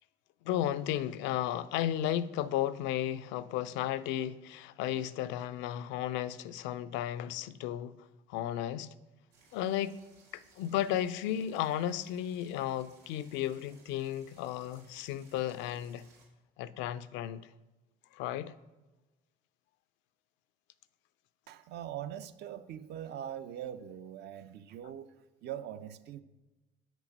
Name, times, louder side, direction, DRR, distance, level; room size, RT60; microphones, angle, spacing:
voice 1, 0.4-7.9 8.3-8.9 9.5-10.0 10.3-16.0 16.6-17.4 18.1-18.5, left 11 dB, 75° left, 0.4 m, -34 dB
sound 1, 9.3-16.2, right 4 dB, 90° right, 2.2 m, -63 dB
voice 2, 21.5-26.2, right 10 dB, 60° right, 0.6 m, -42 dB
6.0 x 4.9 x 5.3 m
supercardioid pair, 70°, 19 cm